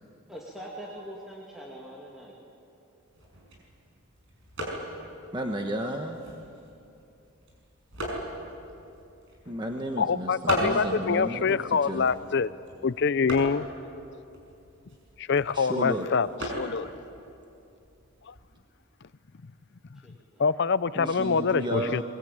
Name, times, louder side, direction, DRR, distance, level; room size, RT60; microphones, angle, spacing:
voice 1, 0.3-2.3 20.0-20.1, right 1 dB, ahead, 2.3 m, -42 dB
sound 1, 3.0-18.6, right 1 dB, 60° right, 6.1 m, -39 dB
voice 2, 5.3-6.2 9.5-12.1 15.5-16.1 20.9-22.0, equal, 20° right, 1.2 m, -32 dB
voice 3, 10.0-12.5 12.8-13.7 15.2-16.3 16.5-16.9 18.3-18.4 19.9-20.0 20.4-22.0, left 5 dB, 55° left, 0.5 m, -25 dB
22.5 x 22.5 x 8.7 m
head